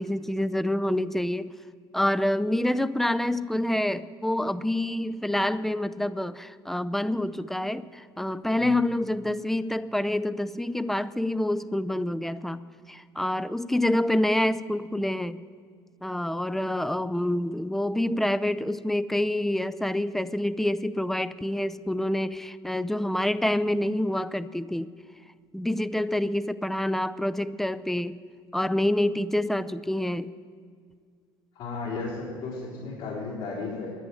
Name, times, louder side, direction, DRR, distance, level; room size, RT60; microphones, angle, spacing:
voice 1, 0.0-1.5 1.9-12.6 12.9-15.4 16.0-24.9 25.5-28.2 28.5-30.3, left 1 dB, ahead, 14 dB, 0.5 m, -27 dB
voice 2, 31.5-33.9, left 3 dB, 65° left, -7 dB, 4.3 m, -34 dB
11.0 x 10.0 x 9.3 m, 2.1 s
hypercardioid pair, 65°, 13 cm